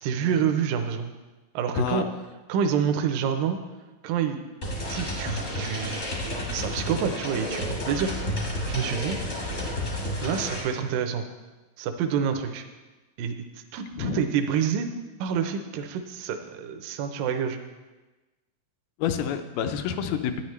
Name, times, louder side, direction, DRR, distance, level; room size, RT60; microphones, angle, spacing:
voice 1, 0.0-1.1 1.5-2.1 2.5-3.6 4.0-4.4 4.9-6.0 6.5-8.1 8.7-9.2 10.2-11.2 11.8-12.6 13.2-13.4 13.7-14.9 15.2-17.6, right 7 dB, 80° right, 6 dB, 2.1 m, -27 dB
voice 2, 1.8-2.1 14.0-14.2 19.0-20.4, left 8 dB, 80° left, 8 dB, 2.3 m, -28 dB
sound 1, 4.6-10.6, left 1 dB, 60° left, 0.8 m, -31 dB
12.0 x 9.6 x 3.2 m, 1.2 s
omnidirectional pair, 4.5 m